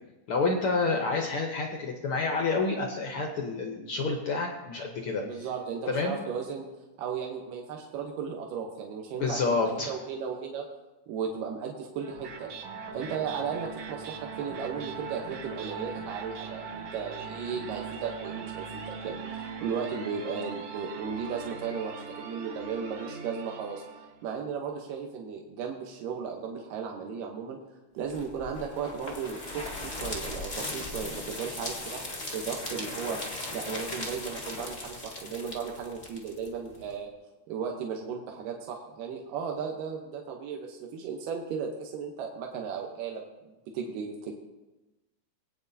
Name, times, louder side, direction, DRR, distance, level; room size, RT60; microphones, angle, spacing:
voice 1, 0.3-5.5 5.9-6.1 9.2-9.9, left 3 dB, 80° left, 2 dB, 1.2 m, -29 dB
voice 2, 5.2-6.6 7.0-9.4 9.8-10.6 11.1-12.5 12.9-21.9 22.2-23.8 24.2-27.6 27.9-32.0 32.3-33.2 33.5-37.1 37.5-43.2 43.7-44.3, right 6 dB, 90° right, 1 dB, 2.7 m, -35 dB
sound 1, 12.0-24.2, right 5 dB, 60° right, 1.8 m, -40 dB
sound 2, 28.1-36.9, left 2 dB, 65° left, 0.4 m, -38 dB
20.5 x 9.1 x 2.7 m, 1.1 s
omnidirectional pair, 3.8 m